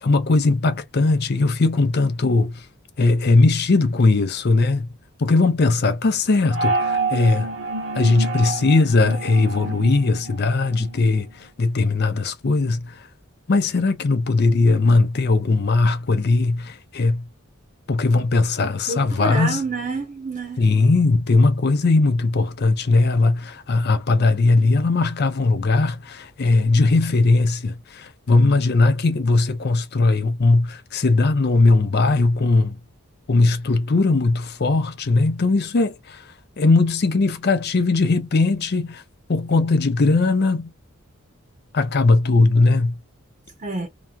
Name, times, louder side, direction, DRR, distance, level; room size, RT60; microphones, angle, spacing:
voice 1, 0.0-2.6 3.0-4.9 5.2-7.5 7.9-11.3 11.6-13.0 13.5-17.3 17.9-19.6 20.6-32.8 33.3-36.2 36.6-39.0 39.3-40.7 41.7-43.0, left 3 dB, 50° left, 0.5 m, -19 dB
sound 1, 6.5-11.1, right 3 dB, 60° right, 1.0 m, -28 dB
voice 2, 18.9-20.6 43.6-43.9, right 3 dB, 35° right, 0.8 m, -28 dB
2.9 x 2.2 x 2.3 m
head